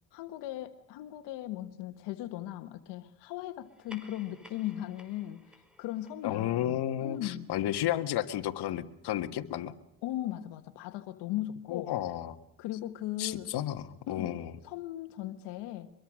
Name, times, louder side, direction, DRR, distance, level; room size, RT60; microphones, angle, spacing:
voice 1, 0.1-7.5 10.0-11.9 12.6-13.5 14.1-14.4 14.6-15.9, left 13 dB, 90° left, 8 dB, 1.6 m, -38 dB
sound 1, 3.6-8.5, left 1 dB, ahead, 4.8 m, -57 dB
voice 2, 6.2-9.7 11.7-12.4 13.2-14.5, left 12 dB, 70° left, 7 dB, 1.8 m, -32 dB
24.0 x 23.0 x 6.4 m, 0.79 s
cardioid pair, 95°, 40 cm